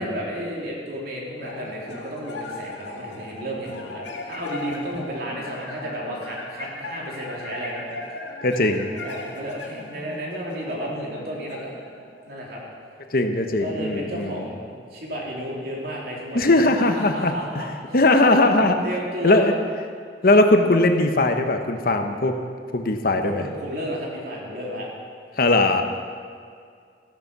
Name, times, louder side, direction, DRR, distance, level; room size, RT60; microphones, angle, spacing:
voice 1, 0.0-7.9 9.0-11.7 12.2-12.6 13.6-17.7 18.8-19.5 23.2-24.9, right 1 dB, 60° right, -3 dB, 3.7 m, -32 dB
sound 1, 1.4-13.0, left 2 dB, 90° left, 2.0 m, -38 dB
voice 2, 8.4-8.9 13.1-14.4 16.3-17.6 17.9-18.8 19.2-19.5 20.2-22.4 22.7-23.4 25.4-25.8, left 2 dB, 55° left, 6 dB, 1.1 m, -19 dB
15.0 x 10.5 x 6.9 m, 2.2 s
head